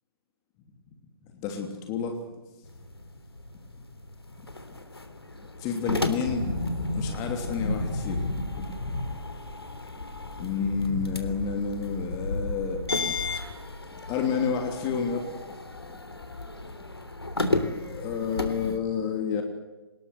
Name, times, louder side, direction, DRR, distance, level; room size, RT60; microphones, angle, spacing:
voice 1, 1.3-2.2 5.6-6.4 6.9-8.2 10.4-12.8 14.1-15.3 17.9-19.4, left 6 dB, 25° left, 4 dB, 3.0 m, -29 dB
sound 1, 2.6-18.8, left 2 dB, 85° left, 3.5 m, -35 dB
sound 2, 6.3-15.1 15.3-15.4 15.7-16.7 17.0-17.1, left 2 dB, 65° left, 6.6 m, -34 dB
24.5 x 20.5 x 8.1 m, 1.2 s
figure-of-eight pair, 130°, 13 cm